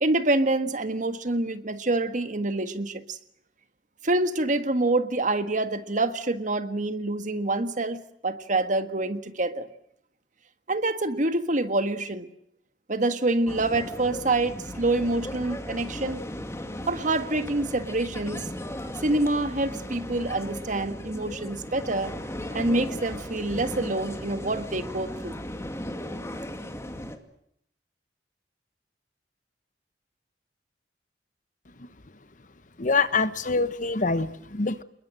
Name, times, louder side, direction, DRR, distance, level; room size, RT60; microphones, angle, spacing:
voice 1, 0.0-3.2 4.0-9.7 10.7-12.3 12.9-16.2 16.9-18.5 19.0-22.1 22.5-25.4, right 2 dB, 45° right, 10 dB, 1.6 m, -26 dB
sound 1, 13.5-27.2, left 1 dB, 15° left, 2.2 m, -36 dB
voice 2, 32.8-34.8, left 4 dB, 45° left, 13 dB, 1.1 m, -25 dB
27.5 x 21.5 x 7.7 m, 0.72 s
head